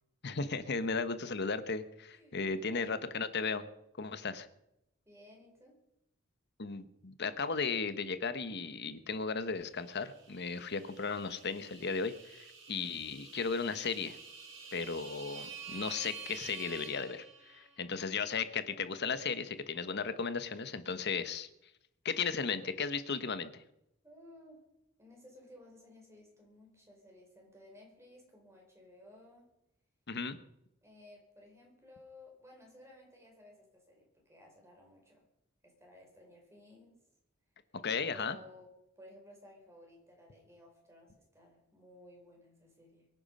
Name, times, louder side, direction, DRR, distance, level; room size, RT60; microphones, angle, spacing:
voice 1, 0.2-3.7 4.0-4.5 6.6-14.2 14.7-21.5 22.0-23.6 30.1-30.4 37.8-38.4, left 5 dB, 55° left, 11 dB, 1.1 m, -35 dB
voice 2, 2.1-3.1 5.0-5.8 24.0-24.6 25.0-29.5 30.8-35.3 35.6-36.9 38.0-38.7 39.0-43.1, left 1 dB, 15° right, 0 dB, 4.9 m, -57 dB
sound 1, 9.8-17.8, right 5 dB, 70° right, 6.3 m, -49 dB
23.5 x 9.7 x 5.5 m, 0.84 s
head